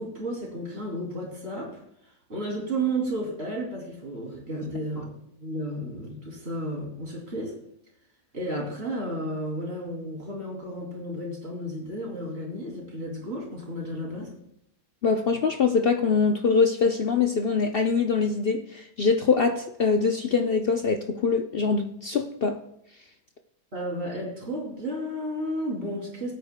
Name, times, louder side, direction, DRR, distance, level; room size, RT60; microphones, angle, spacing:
voice 1, 0.0-1.8 2.3-5.1 5.4-7.5 8.3-14.3 23.7-26.3, right 1 dB, 35° right, -2 dB, 3.2 m, -32 dB
voice 2, 15.0-22.6, left 5 dB, 90° left, 5 dB, 0.5 m, -23 dB
19.0 x 9.1 x 2.2 m, 0.77 s
omnidirectional pair, 1.8 m